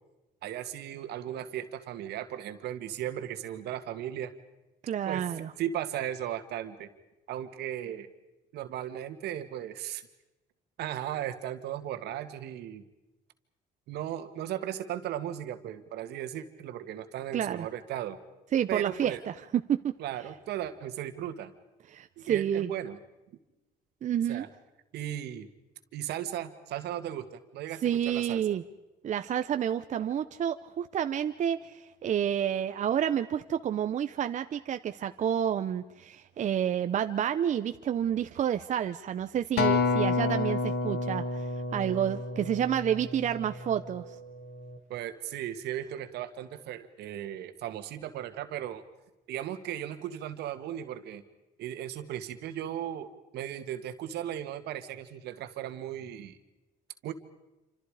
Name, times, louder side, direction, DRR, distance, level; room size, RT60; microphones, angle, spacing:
voice 1, 0.4-4.3 5.0-5.2 5.6-6.9 7.3-8.1 8.5-10.1 10.8-12.8 13.9-18.2 18.7-19.2 20.0-21.5 22.2-23.0 24.3-24.5 24.9-25.5 25.9-28.4 44.9-48.8 49.3-51.2 51.6-56.4 57.0-57.1, right 11 dB, 75° right, 9 dB, 1.9 m, -36 dB
voice 2, 4.8-5.5 17.3-17.7 18.5-19.3 19.7-19.9 21.9-22.7 24.0-24.5 27.8-28.6 29.0-41.4 41.7-44.2, right 9 dB, 45° right, 8 dB, 0.8 m, -29 dB
Acoustic guitar, 39.6-44.0 44.6-44.8, left 3 dB, 70° left, 2.3 m, -30 dB
27.5 x 26.5 x 5.0 m, 1.0 s
cardioid pair, 110°, 17 cm